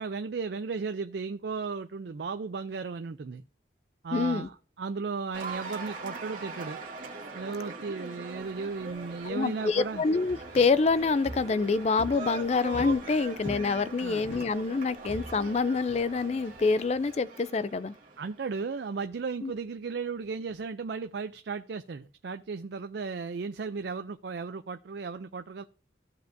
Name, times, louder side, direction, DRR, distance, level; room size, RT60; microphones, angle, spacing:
voice 1, 0.0-3.4 4.0-6.8 7.3-10.0 14.0-14.2 18.2-25.6, right 4 dB, 65° right, 0.4 m, -35 dB
voice 2, 4.1-4.5 9.2-17.9 19.4-19.5, left 4 dB, 35° left, 0.3 m, -26 dB
Cheering / Applause, 5.3-18.7, right 3 dB, 45° right, 2.1 m, -42 dB
sound 1, 8.3-17.2, equal, 70° left, 1.8 m, -46 dB
15.0 x 5.2 x 2.6 m
head